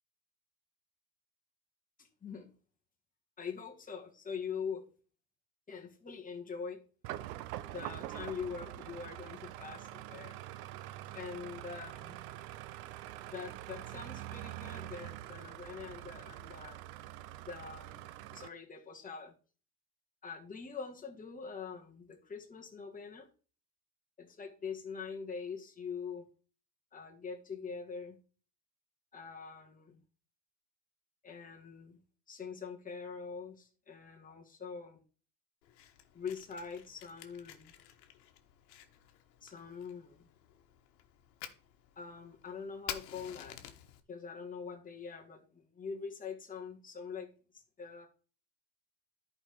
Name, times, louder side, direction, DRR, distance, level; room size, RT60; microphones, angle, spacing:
voice 1, 2.0-2.5 3.4-4.9 5.7-6.8 7.7-10.4 11.1-12.2 13.2-16.8 17.4-19.3 20.2-23.3 24.2-26.3 26.9-28.2 29.1-30.0 31.2-32.0 32.3-35.0 36.1-37.7 39.4-40.3 42.0-43.7 44.1-48.1, left 6 dB, 15° left, 1.9 m, -44 dB
sound 1, 7.0-18.5, right 14 dB, 75° right, 0.7 m, -45 dB
Fire, 35.6-44.0, left 11 dB, 80° left, 1.3 m, -50 dB
11.0 x 4.9 x 4.8 m
supercardioid pair, 100°, 49 cm